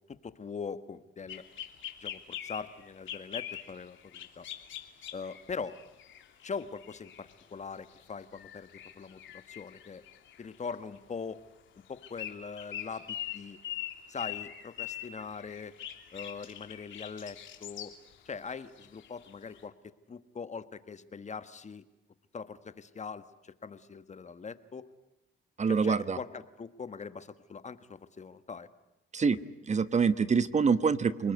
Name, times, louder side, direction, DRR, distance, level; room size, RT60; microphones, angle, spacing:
voice 1, 0.1-1.4 2.0-4.5 5.1-5.8 6.4-8.7 8.9-10.0 10.4-11.4 11.9-13.6 14.1-15.8 16.1-17.9 18.2-21.8 22.3-24.9 25.7-28.7, left 5 dB, 35° left, 12 dB, 1.5 m, -42 dB
sound 1, 1.3-7.4 7.9-8.0 8.3-11.0 11.9-18.1 18.5-19.6, left 11 dB, 75° left, 2.9 m, -43 dB
voice 2, 25.6-26.2 29.1-29.4 29.7-31.3, right 5 dB, 35° right, 13 dB, 1.2 m, -25 dB
28.5 x 20.0 x 9.5 m, 0.98 s
cardioid pair, 90°, 20 cm